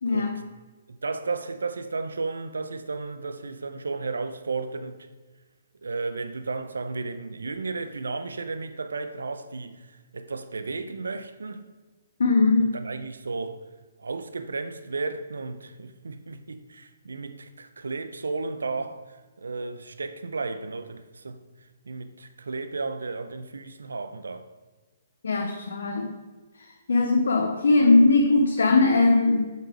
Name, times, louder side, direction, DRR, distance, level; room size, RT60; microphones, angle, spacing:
voice 1, 0.0-0.4 12.2-12.8 25.2-26.1 26.6-29.5, left 3 dB, 70° left, 0.8 m, -20 dB
voice 2, 1.0-5.0 5.8-9.8 10.1-11.6 12.7-13.6 14.0-21.4 21.9-24.5, right 3 dB, 80° right, 0.7 m, -33 dB
7.5 x 5.6 x 4.9 m
hypercardioid pair, 130°, 0 cm